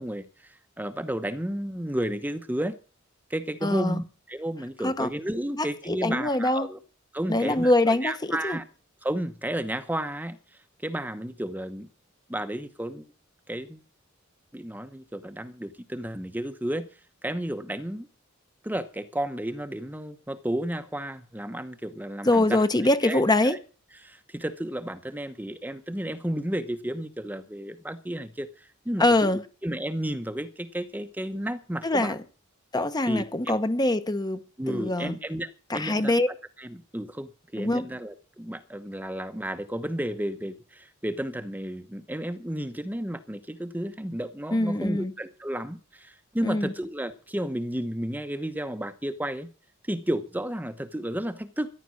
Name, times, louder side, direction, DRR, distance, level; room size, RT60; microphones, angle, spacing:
voice 1, 0.0-2.8 3.3-6.8 7.1-8.6 9.0-10.4 10.8-11.9 12.3-13.1 13.5-13.8 14.5-16.9 17.2-18.1 18.6-22.6 23.0-23.6 24.0-29.3 29.6-32.2 33.1-33.5 34.6-36.1 36.6-49.5 49.9-51.7, right 1 dB, 10° right, 0.9 m, -32 dB
voice 2, 3.6-4.0 4.8-5.1 5.5-6.7 7.3-8.6 22.2-23.6 29.0-29.4 31.8-32.2 32.7-35.2 35.7-36.3 37.6-37.8 44.5-45.1 46.4-46.7, left 1 dB, 20° left, 0.9 m, -24 dB
14.0 x 11.0 x 6.3 m
head